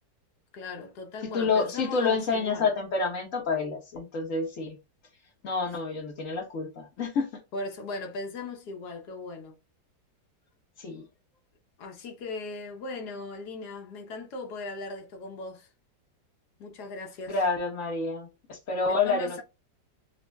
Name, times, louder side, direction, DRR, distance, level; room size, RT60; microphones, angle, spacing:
voice 1, 0.5-2.7 7.5-9.6 11.8-15.7 16.6-17.3 18.9-19.4, left 3 dB, 65° left, 1.4 m, -38 dB
voice 2, 1.3-4.8 5.4-7.3 10.8-11.0 17.3-19.4, left 4 dB, 50° left, 1.4 m, -28 dB
5.1 x 2.2 x 2.3 m
omnidirectional pair, 1.9 m